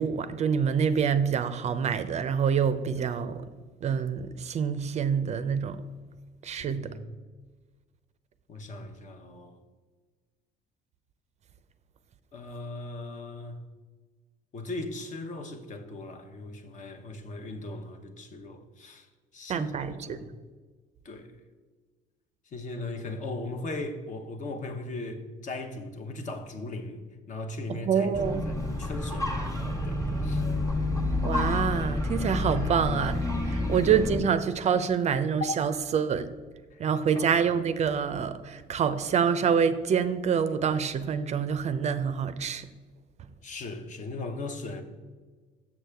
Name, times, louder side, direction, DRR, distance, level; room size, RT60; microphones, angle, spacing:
voice 1, 0.0-3.5 3.8-5.8 6.4-6.9 19.5-20.2 27.8-28.4 31.2-36.3 36.8-42.6, right 7 dB, 40° right, 12 dB, 0.4 m, -26 dB
voice 2, 6.6-7.0 8.5-9.6 12.3-13.6 14.5-19.1 19.3-20.3 21.0-21.3 22.5-27.0 27.3-30.5 33.5-33.8 35.4-35.6 36.7-37.3 43.4-44.8, left 2 dB, 45° left, 6 dB, 0.9 m, -38 dB
sound 1, 28.1-34.2, left 2 dB, 20° left, 1.3 m, -29 dB
7.2 x 6.2 x 3.4 m, 1.4 s
cardioid pair, 110°, 17 cm